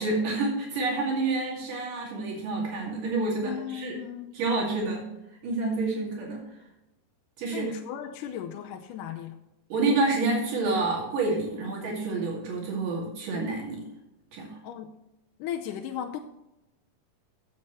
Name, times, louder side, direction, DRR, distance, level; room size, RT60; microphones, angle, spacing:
voice 1, 0.0-4.0 4.3-5.1 5.4-6.4 7.4-7.7 9.7-13.9 14.3-14.5, right 3 dB, 80° right, -3 dB, 4.0 m, -28 dB
voice 2, 3.4-4.4 7.5-9.4 14.6-15.0 15.4-16.2, left 10 dB, 85° left, 3 dB, 2.2 m, -36 dB
16.0 x 7.6 x 3.1 m, 0.90 s
omnidirectional pair, 3.8 m